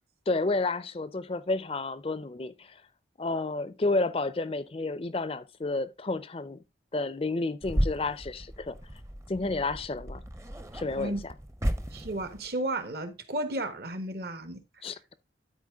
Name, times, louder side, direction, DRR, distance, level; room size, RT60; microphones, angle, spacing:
voice 1, 0.3-2.8 3.2-6.6 6.9-8.8 9.3-10.2 10.7-11.3 14.8-15.0, left 3 dB, 30° left, 0.5 m, -31 dB
sound 1, 7.6-12.5, equal, 15° right, 0.7 m, -34 dB
voice 2, 11.9-14.6, right 1 dB, 55° right, 1.1 m, -33 dB
12.0 x 4.5 x 3.5 m
head